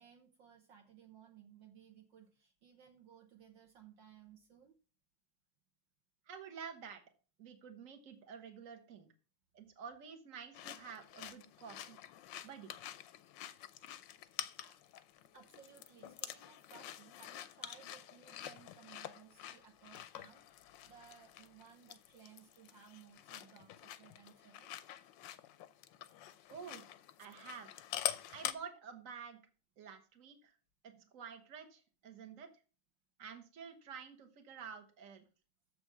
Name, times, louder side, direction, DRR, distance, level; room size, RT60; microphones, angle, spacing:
voice 1, 0.0-4.7 14.6-14.8 15.3-24.7 30.9-31.1, right 8 dB, 65° right, 3 dB, 1.6 m, -60 dB
voice 2, 6.3-7.0 7.4-9.1 9.5-12.0 12.4-12.7 26.5-26.8 27.2-27.7 28.3-29.4 29.8-30.6 30.8-32.5 33.2-35.2, right 6 dB, 40° right, 5 dB, 1.6 m, -50 dB
sound 1, 10.5-28.5, left 11 dB, 70° left, 1.2 m, -47 dB
7.1 x 7.0 x 6.0 m, 0.36 s
omnidirectional pair, 2.4 m